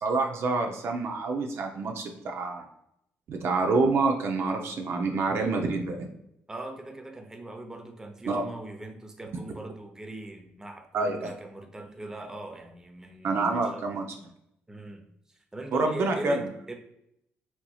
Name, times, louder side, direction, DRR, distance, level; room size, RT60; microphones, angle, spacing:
voice 1, 0.0-2.6 3.3-6.1 8.3-8.4 10.9-11.3 13.2-14.0 15.7-16.5, right 3 dB, 60° right, 3 dB, 0.6 m, -27 dB
voice 2, 6.5-14.0 14.7-16.8, right 1 dB, 10° right, 3 dB, 0.7 m, -41 dB
4.5 x 2.8 x 2.3 m, 0.77 s
supercardioid pair, 75°, 5 cm